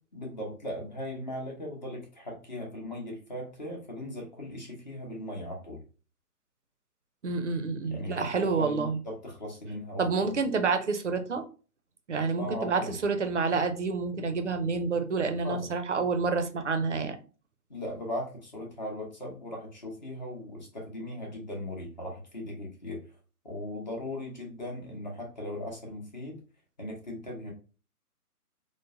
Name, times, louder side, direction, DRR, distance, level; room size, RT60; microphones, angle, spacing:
voice 1, 0.1-5.8 7.8-10.4 12.4-13.0 15.4-15.7 17.7-23.1 23.4-26.4 26.8-27.5, left 1 dB, 30° left, -1 dB, 0.8 m, -38 dB
voice 2, 7.2-9.0 10.0-11.4 12.1-17.2, right 4 dB, 50° right, 7 dB, 0.5 m, -28 dB
4.5 x 2.1 x 2.5 m, 0.36 s
figure-of-eight pair, 140°, 47 cm